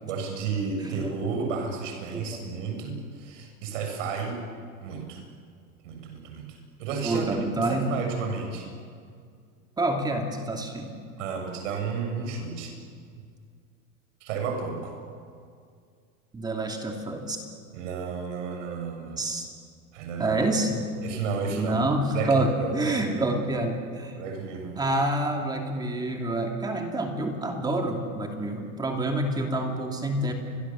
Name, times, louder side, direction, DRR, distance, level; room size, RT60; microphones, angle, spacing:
voice 1, 0.0-4.4 4.8-5.2 5.8-7.3 7.6-8.7 11.2-12.8 14.2-15.0 17.7-19.2 19.9-20.4 21.0-21.9 22.1-23.3 24.2-24.8, right 5 dB, 60° right, 3 dB, 7.4 m, -32 dB
voice 2, 0.8-1.1 1.4-1.5 2.1-2.4 7.0-7.9 9.8-10.9 16.3-17.4 19.2-19.5 20.2-20.8 21.5-24.2 24.8-30.3, right 2 dB, 10° right, 3 dB, 2.7 m, -27 dB
30.0 x 24.0 x 7.5 m, 2.2 s
supercardioid pair, 165°, 42 cm